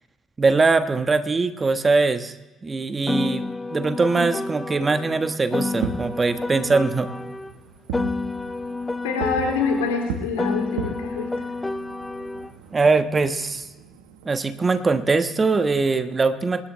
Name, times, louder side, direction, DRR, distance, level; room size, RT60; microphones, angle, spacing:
voice 1, 0.4-2.3 2.6-7.1 12.7-13.7 14.2-16.7, right 3 dB, 30° right, 9 dB, 1.3 m, -21 dB
Piano, 3.1-7.5 7.9-12.5, left 3 dB, 15° left, 0.9 m, -29 dB
Fireworks, 5.6-14.9, right 5 dB, 80° right, 1.2 m, -38 dB
voice 2, 9.0-11.3, left 5 dB, 85° left, 2 dB, 2.5 m, -26 dB
26.0 x 11.5 x 3.3 m, 1.1 s
hypercardioid pair, 50°, 0 cm